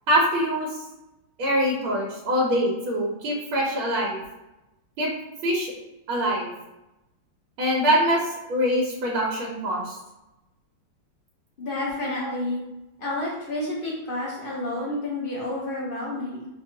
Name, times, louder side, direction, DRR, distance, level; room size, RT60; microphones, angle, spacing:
voice 1, 0.1-0.7 1.4-4.2 5.0-5.1 5.4-5.7 6.1-6.5 7.6-10.0, equal, 75° right, -3 dB, 1.6 m, -24 dB
voice 2, 11.6-12.6 13.0-16.5, left 1 dB, 85° left, -5 dB, 0.4 m, -30 dB
6.4 x 2.3 x 2.7 m, 0.95 s
omnidirectional pair, 2.3 m